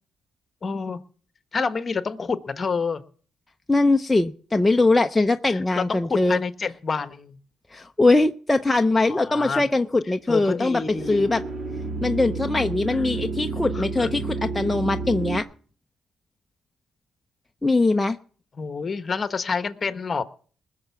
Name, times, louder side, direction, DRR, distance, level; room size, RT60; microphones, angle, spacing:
voice 1, 0.6-1.0 1.5-3.0 5.5-7.4 9.0-9.6 10.3-11.3 12.9-13.0 13.7-14.2 18.6-20.2, left 5 dB, 35° left, 12 dB, 1.2 m, -28 dB
voice 2, 3.7-6.4 7.7-10.8 11.1-11.4 12.0-15.5 17.6-18.2, left 2 dB, 15° left, 5 dB, 0.7 m, -21 dB
sound 1, 10.6-15.4, right 4 dB, 55° right, 3.0 m, -31 dB
20.0 x 6.8 x 7.0 m, 0.43 s
cardioid pair, 90°, 0 cm